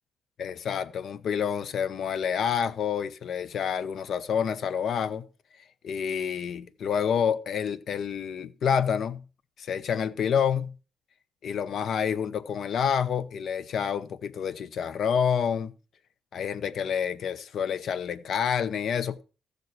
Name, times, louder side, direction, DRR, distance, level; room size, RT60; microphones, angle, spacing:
voice 1, 0.4-5.3 5.8-9.2 9.6-10.7 11.4-15.7 16.3-19.2, left 7 dB, 65° left, 0.8 m, -28 dB
14.5 x 6.8 x 4.3 m
cardioid pair, 90°, 0 cm